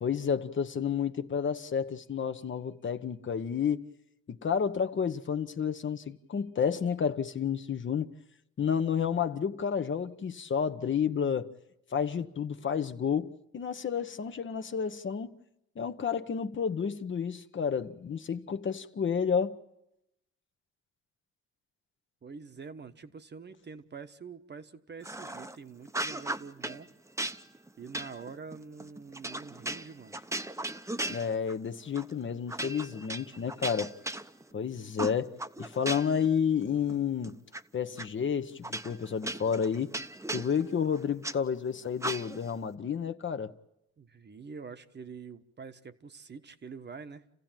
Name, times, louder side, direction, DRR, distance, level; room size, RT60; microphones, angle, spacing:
voice 1, 0.0-3.8 4.3-8.1 8.6-11.5 11.9-15.3 15.8-19.6 31.1-33.9 34.5-37.3 37.7-39.9 40.3-43.5, left 7 dB, 40° left, 1.0 m, -30 dB
voice 2, 22.2-26.9 27.8-30.2 44.0-47.2, right 5 dB, 35° right, 1.2 m, -46 dB
sound 1, 25.0-25.6 25.9-26.8 27.2-31.6 31.9-32.1 32.5-34.6 35.0-36.3 36.6-37.6 38.0-38.1 38.6-41.4 42.0-42.5, right 2 dB, 10° right, 0.9 m, -37 dB
29.0 x 15.5 x 9.1 m
cardioid pair, 90°, 30 cm